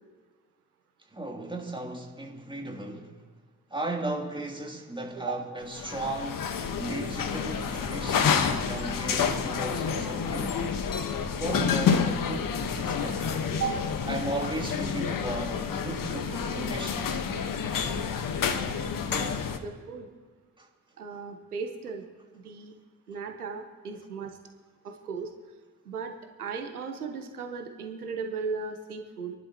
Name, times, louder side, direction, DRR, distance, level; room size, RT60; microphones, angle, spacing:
voice 1, 1.1-3.2 3.7-10.6 11.4-13.2 14.1-17.2 20.6-20.7, right 2 dB, 10° right, 3.0 m, -36 dB
sound 1, 5.7-19.6, left 6 dB, 50° left, 1.4 m, -29 dB
voice 2, 19.1-20.1 21.0-22.0 22.3-22.7 23.1-24.4 24.8-25.3 25.8-29.3, right 5 dB, 90° right, 1.1 m, -36 dB
28.0 x 11.5 x 3.0 m
figure-of-eight pair, 45°, 43 cm